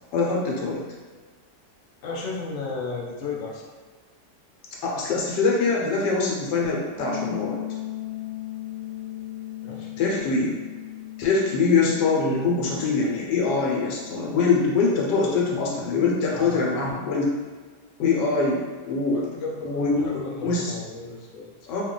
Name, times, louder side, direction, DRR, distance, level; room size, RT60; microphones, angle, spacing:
voice 1, 0.1-0.8 4.8-7.6 10.0-10.6 11.2-17.3 18.0-19.2 19.6-20.7 21.7-21.8, left 4 dB, 85° left, -2 dB, 1.4 m, -23 dB
voice 2, 2.0-3.6 9.6-10.0 16.3-16.7 19.1-21.5, left 3 dB, 60° left, -2 dB, 0.8 m, -34 dB
sound 1, 7.0-16.7, left 12 dB, 55° right, 0.6 m, -38 dB
2.9 x 2.3 x 3.7 m, 1.4 s
omnidirectional pair, 1.8 m